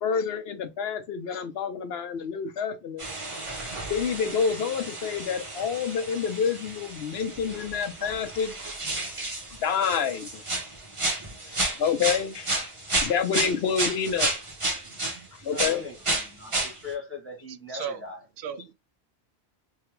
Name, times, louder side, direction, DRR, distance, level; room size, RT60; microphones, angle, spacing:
voice 1, 0.0-3.1 3.9-8.5 9.6-10.4 11.4-12.6 13.0-14.3 15.3-15.8, left 6 dB, 80° left, 0.9 m, -28 dB
sound 1, 3.0-15.2 15.5-16.8, right 2 dB, 30° right, 1.2 m, -32 dB
voice 2, 15.4-18.3, left 4 dB, 10° left, 1.6 m, -39 dB
voice 3, 18.4-18.7, right 7 dB, 70° right, 0.8 m, -35 dB
3.3 x 3.3 x 3.0 m
omnidirectional pair, 1.0 m